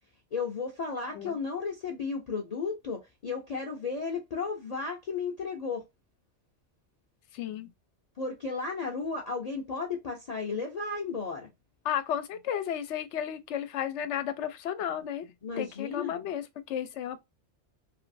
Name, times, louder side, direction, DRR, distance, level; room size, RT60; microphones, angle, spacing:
voice 1, 0.3-5.8 8.2-11.5 15.4-16.1, left 4 dB, 45° left, 0.6 m, -34 dB
voice 2, 7.3-7.7 11.8-17.2, left 9 dB, 80° left, 0.9 m, -33 dB
2.9 x 2.7 x 2.5 m
omnidirectional pair, 1.2 m